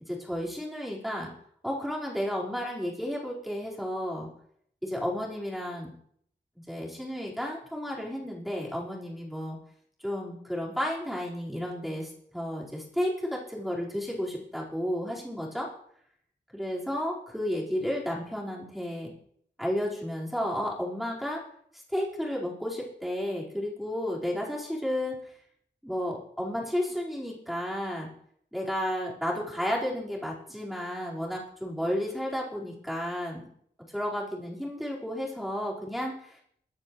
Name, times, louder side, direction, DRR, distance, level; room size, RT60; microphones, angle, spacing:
voice 1, 0.1-1.3 1.6-4.3 4.8-5.9 6.7-9.6 10.0-15.7 16.5-19.1 19.6-21.4 21.7-25.3 25.8-28.1 28.5-33.4 33.9-36.4, equal, ahead, -5 dB, 4.7 m, -32 dB
22.5 x 10.0 x 3.2 m, 0.67 s
wide cardioid pair, 90°, 18 cm